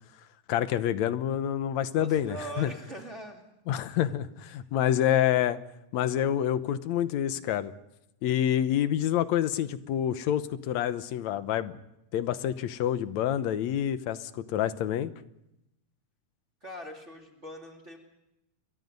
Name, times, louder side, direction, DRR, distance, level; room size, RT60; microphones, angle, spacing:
voice 1, 0.5-2.7 3.7-5.6 5.9-7.7 8.2-11.8 12.1-15.1, left 11 dB, 70° left, 12 dB, 2.0 m, -27 dB
voice 2, 1.9-3.4 3.9-4.0 16.6-18.0, right 1 dB, 20° right, 1 dB, 2.7 m, -42 dB
28.5 x 23.0 x 5.3 m, 0.88 s
omnidirectional pair, 3.8 m